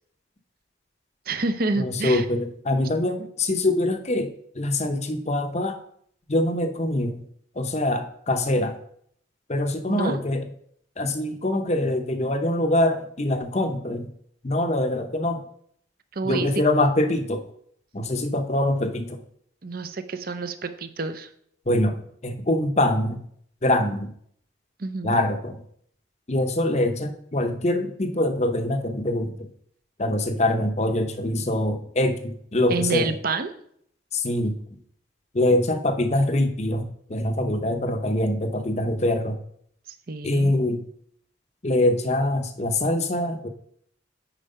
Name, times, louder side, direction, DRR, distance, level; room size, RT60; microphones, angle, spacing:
voice 1, 1.3-2.3 3.2-3.3 9.9-10.2 16.1-16.6 19.6-21.3 24.8-25.2 32.7-33.5 39.9-40.5, right 3 dB, 45° right, 10 dB, 0.6 m, -28 dB
voice 2, 1.8-5.8 6.3-7.2 7.6-8.8 9.5-10.5 11.0-14.1 14.4-15.4 16.2-17.4 17.9-19.2 21.7-22.0 22.2-23.2 23.6-24.1 25.0-25.6 26.3-29.5 30.0-33.1 34.1-34.6 35.3-39.4 40.2-40.8 41.6-43.5, left 1 dB, 35° left, 7 dB, 0.8 m, -24 dB
9.0 x 4.8 x 5.4 m, 0.66 s
head